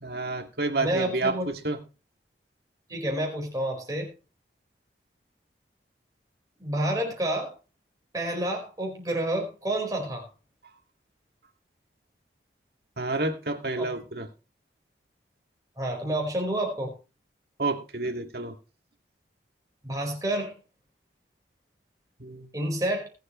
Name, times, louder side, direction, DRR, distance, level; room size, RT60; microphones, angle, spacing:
voice 1, 0.0-1.8 13.0-14.3 17.6-18.5 22.2-22.5, right 2 dB, 65° right, 5 dB, 2.2 m, -29 dB
voice 2, 0.8-1.5 2.9-4.1 6.6-7.5 8.1-10.3 13.8-13.9 15.8-16.9 19.8-20.5 22.5-23.1, right 1 dB, 20° right, 0 dB, 4.7 m, -29 dB
20.5 x 8.0 x 3.2 m, 0.31 s
head